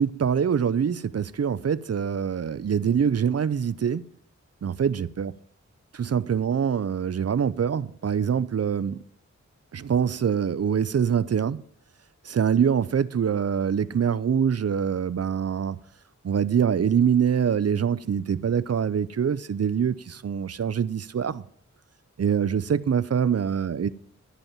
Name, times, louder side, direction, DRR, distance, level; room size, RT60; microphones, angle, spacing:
voice 1, 0.0-4.0 4.6-5.3 5.9-9.0 9.7-11.6 12.3-15.8 16.2-21.4 22.2-23.9, right 7 dB, 55° right, 0.5 m, -24 dB
11.0 x 5.3 x 8.7 m
cardioid pair, 50°, 30 cm